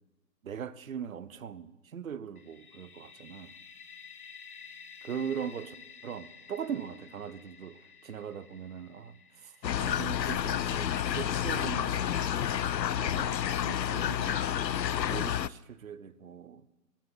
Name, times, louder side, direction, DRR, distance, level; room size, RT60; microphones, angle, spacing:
voice 1, 0.4-3.5 5.0-5.8 6.0-9.5 9.8-12.3 12.9-14.7 15.1-16.7, right 7 dB, 55° right, 0.9 m, -40 dB
sound 1, 2.4-12.1, left 6 dB, 60° left, 1.4 m, -52 dB
sound 2, 9.6-15.5, left 10 dB, 85° left, 0.6 m, -30 dB
13.0 x 10.0 x 8.9 m
figure-of-eight pair, 140°, 49 cm